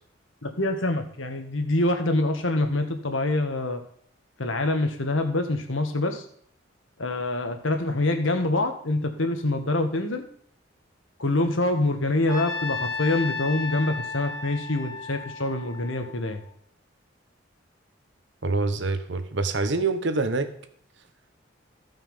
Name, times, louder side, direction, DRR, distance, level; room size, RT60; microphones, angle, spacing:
voice 1, 0.4-3.8 4.4-6.2 7.0-10.2 11.2-16.4, left 2 dB, 75° left, 5 dB, 1.6 m, -25 dB
Trumpet, 12.3-16.5, left 4 dB, 20° left, 1.2 m, -34 dB
voice 2, 18.4-20.5, right 3 dB, 60° right, 9 dB, 1.0 m, -25 dB
15.0 x 5.7 x 5.5 m, 0.63 s
head